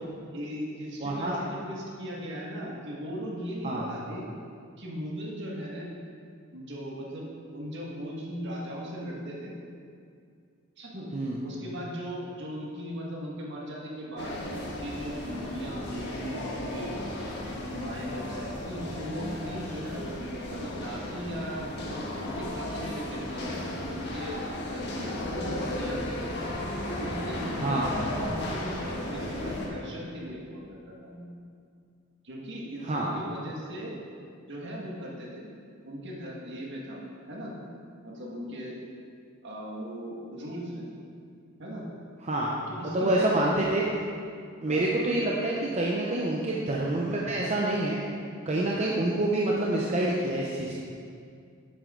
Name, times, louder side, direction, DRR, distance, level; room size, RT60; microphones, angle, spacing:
voice 1, 0.3-4.2 4.8-5.9 6.5-9.5 10.8-11.1 11.4-16.9 17.7-20.0 20.5-23.6 23.9-24.4 24.7-26.4 27.0-31.3 32.2-33.9 34.5-35.5 35.8-37.0 37.3-37.5 38.0-38.7 39.4-40.9 41.6-41.9 42.8-43.6 44.6-44.8, equal, 55° right, -3 dB, 1.8 m, -38 dB
voice 2, 1.0-1.4 3.6-3.9 11.1-11.4 27.6-28.1 32.8-33.2 42.2-42.6 42.8-43.9 44.6-48.0 48.5-50.8, right 1 dB, 30° right, -4 dB, 0.7 m, -27 dB
sound 1, 14.2-29.7, left 1 dB, 55° left, 1.4 m, -35 dB
10.5 x 7.9 x 3.8 m, 2.3 s
head